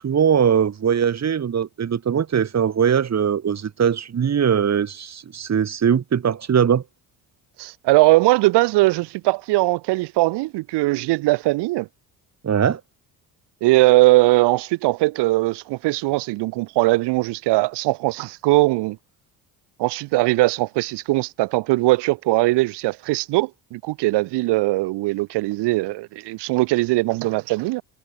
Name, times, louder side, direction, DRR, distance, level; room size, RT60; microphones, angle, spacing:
voice 1, 0.0-6.8 12.4-12.8, right 8 dB, 40° right, 1.9 m, -20 dB
voice 2, 7.6-11.9 13.6-19.0 19.8-27.8, right 20 dB, 70° right, 0.9 m, -20 dB
supercardioid pair, 75°, 42 cm